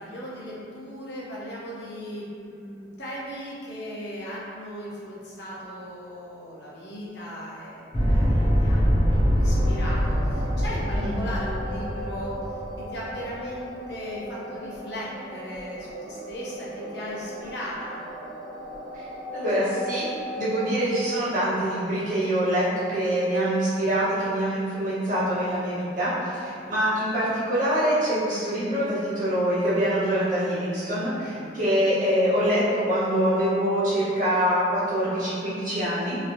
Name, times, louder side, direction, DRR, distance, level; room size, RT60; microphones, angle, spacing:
voice 1, 0.0-12.4 12.8-18.0 26.4-26.6 31.2-31.7, equal, 65° left, -7 dB, 0.7 m, -37 dB
sound 1, 7.9-13.1, equal, 35° left, 0.7 m, -23 dB
sound 2, 9.5-21.2, equal, 25° right, 1.1 m, -38 dB
voice 2, 19.3-20.1 20.3-36.2, equal, 45° right, -11 dB, 1.0 m, -25 dB
3.0 x 2.7 x 2.6 m, 2.6 s
head